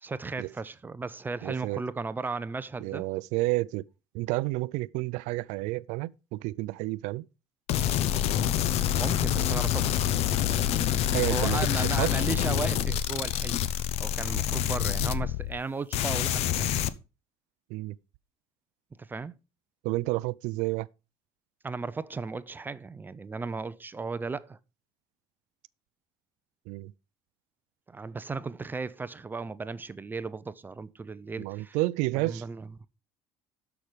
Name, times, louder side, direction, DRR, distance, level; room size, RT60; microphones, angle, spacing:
voice 1, 0.0-3.1 8.9-9.9 11.3-13.6 14.0-16.7 19.0-19.3 21.6-24.6 27.9-31.8 32.2-32.7, right 4 dB, 15° right, 0.5 m, -35 dB
voice 2, 1.4-1.8 2.8-3.8 4.1-7.2 11.1-11.6 12.0-12.1 17.7-18.0 19.8-20.9 26.7-26.9 31.4-32.4, right 20 dB, 80° right, 0.5 m, -30 dB
sound 1, 7.7-15.6 15.9-16.9, left 10 dB, 60° left, 0.8 m, -27 dB
12.5 x 6.0 x 5.0 m
cardioid pair, 135°, 12 cm